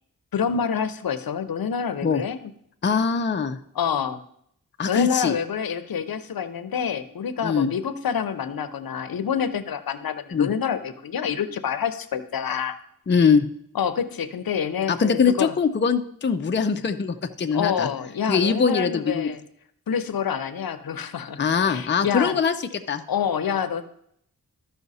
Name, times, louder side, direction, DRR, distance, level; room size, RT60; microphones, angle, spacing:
voice 1, 0.3-2.5 3.7-4.2 4.9-12.8 13.7-15.5 17.5-19.4 19.9-22.4 23.1-23.8, left 7 dB, 70° left, 12 dB, 0.7 m, -27 dB
voice 2, 2.8-3.6 4.8-5.4 7.4-7.7 10.3-10.5 13.1-13.5 14.9-17.9 18.3-19.3 21.4-22.5 22.9-23.0, left 6 dB, 30° left, 7 dB, 0.5 m, -22 dB
13.5 x 5.6 x 4.1 m, 0.71 s
wide cardioid pair, 105°, 36 cm